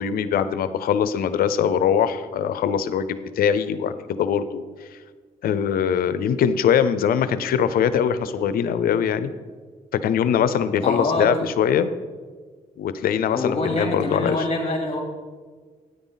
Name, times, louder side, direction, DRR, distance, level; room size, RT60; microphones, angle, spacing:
voice 1, 0.0-4.6 5.4-9.3 10.0-11.9 12.8-14.4, left 8 dB, 85° left, 13 dB, 0.6 m, -22 dB
voice 2, 10.8-11.3 13.3-15.0, left 2 dB, 40° left, 0 dB, 3.3 m, -25 dB
13.0 x 9.8 x 4.0 m, 1.5 s
cardioid pair, 85°, 15 cm